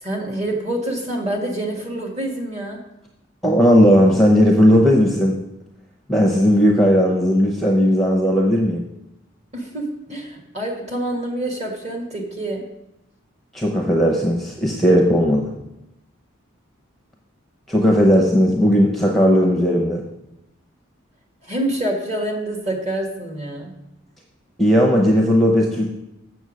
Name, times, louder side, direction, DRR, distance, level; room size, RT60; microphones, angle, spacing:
voice 1, 0.0-2.8 9.5-12.6 21.4-23.7, right 1 dB, 35° right, 1 dB, 1.7 m, -26 dB
voice 2, 3.4-5.3 6.1-8.8 13.5-15.5 17.7-20.0 24.6-25.9, equal, ahead, 0 dB, 0.8 m, -16 dB
7.2 x 7.0 x 6.3 m, 0.88 s
head